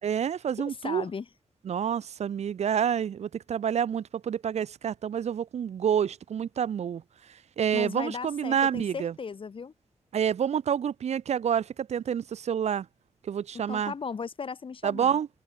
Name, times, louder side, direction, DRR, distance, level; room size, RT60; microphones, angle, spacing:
voice 1, 0.0-1.1 1.6-7.0 7.3-9.1 10.1-12.9 13.2-13.9 14.8-15.3, right 8 dB, 80° right, 0.7 m, -28 dB
voice 2, 0.6-1.3 7.7-9.7 13.7-15.2, left 5 dB, 50° left, 2.0 m, -36 dB
wide cardioid pair, 130°, 11 cm